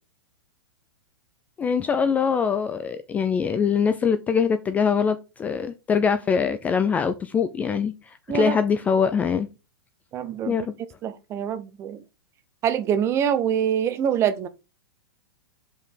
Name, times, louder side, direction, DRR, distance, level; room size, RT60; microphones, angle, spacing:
voice 1, 1.6-7.9 8.3-9.5 10.5-10.7, left 6 dB, 10° left, 0.3 m, -23 dB
voice 2, 10.1-10.7 11.0-12.0 12.6-14.5, right 8 dB, 25° right, 0.6 m, -25 dB
5.3 x 4.9 x 3.7 m
hypercardioid pair, 145°, 12 cm